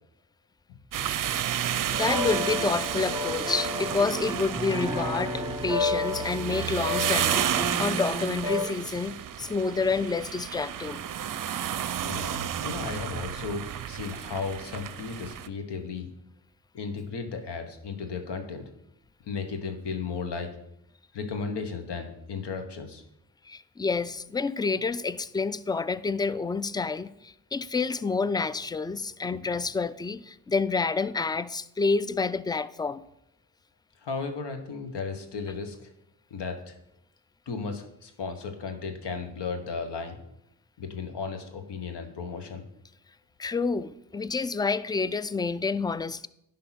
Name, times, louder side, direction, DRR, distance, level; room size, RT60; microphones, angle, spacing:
sound 1, 0.9-15.5, right 10 dB, 50° right, 0.6 m, -32 dB
voice 1, 1.9-11.0 23.5-33.0 43.4-46.3, left 4 dB, 10° left, 0.3 m, -29 dB
sound 2, 1.9-8.7, left 2 dB, 10° right, 1.4 m, -32 dB
voice 2, 12.0-16.1 16.7-18.6 19.3-20.5 21.1-23.0 34.0-35.8 36.3-36.7 37.5-40.2 40.8-42.6, left 5 dB, 75° left, 1.3 m, -35 dB
10.5 x 3.8 x 5.8 m
supercardioid pair, 45°, 42 cm